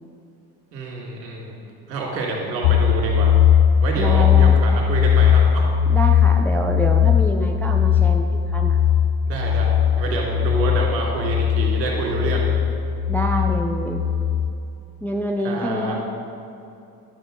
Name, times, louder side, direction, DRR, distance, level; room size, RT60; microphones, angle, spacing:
voice 1, 0.7-1.6 1.9-3.3 3.8-5.7 9.3-12.5 15.4-16.0, right 3 dB, 85° right, -2 dB, 2.0 m, -27 dB
sound 1, 2.6-14.5, left 8 dB, 75° left, 0.6 m, -18 dB
voice 2, 4.0-4.6 5.9-8.8 13.1-14.0 15.0-16.0, equal, 5° left, 2 dB, 0.4 m, -26 dB
11.0 x 6.6 x 3.7 m, 2.7 s
hypercardioid pair, 75°, 50 cm